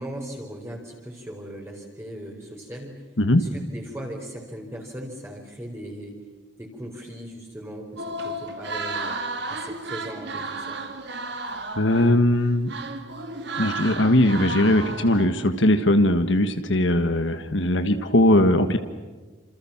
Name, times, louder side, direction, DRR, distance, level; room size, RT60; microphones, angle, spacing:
voice 1, 0.0-3.0 3.3-6.2 6.6-9.2 9.5-10.8, equal, 15° right, -1 dB, 4.5 m, -38 dB
sound 1, 8.0-12.4 12.7-15.3, right 2 dB, 55° right, 3.0 m, -33 dB
voice 2, 11.8-12.7 13.6-18.8, left 1 dB, 70° left, 8 dB, 1.6 m, -20 dB
28.0 x 27.5 x 7.3 m, 1.3 s
head